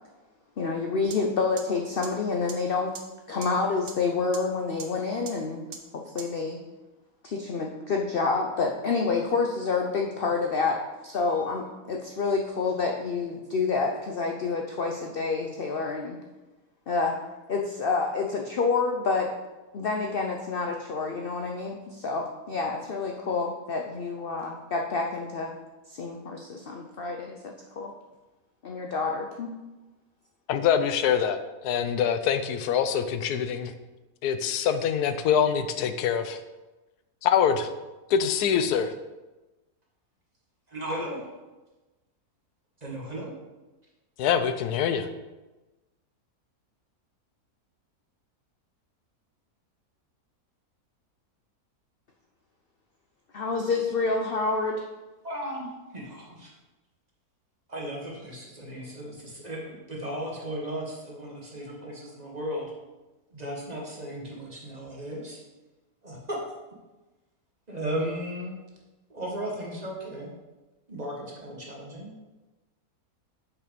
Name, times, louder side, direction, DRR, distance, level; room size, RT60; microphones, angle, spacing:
voice 1, 0.6-3.0 3.3-5.6 5.9-6.6 7.2-16.2 16.9-17.2 17.5-19.3 19.7-25.5 25.9-27.9 28.6-29.5 53.3-54.8, left 4 dB, 50° left, 1 dB, 0.7 m, -28 dB
sound 1, 1.1-1.2 1.6-1.7 2.0-2.1 2.5-2.6 2.9-3.0 3.4-3.5 3.9-4.0 4.3-4.4 4.8-4.9 5.3-5.4 5.7-5.8 6.2-6.3, right 7 dB, 70° right, 1.4 m, -38 dB
voice 2, 30.5-33.7 34.2-36.4 37.2-37.7 38.1-38.9 44.2-45.1, left 8 dB, 85° left, 10 dB, 1.2 m, -24 dB
voice 3, 40.7-41.3 42.8-43.4 55.2-56.5 57.7-62.7 63.3-65.4 66.0-66.4 67.7-68.6 69.1-70.3 70.9-72.1, equal, 25° right, -2 dB, 1.6 m, -35 dB
6.6 x 5.8 x 5.1 m, 1.1 s
omnidirectional pair, 1.6 m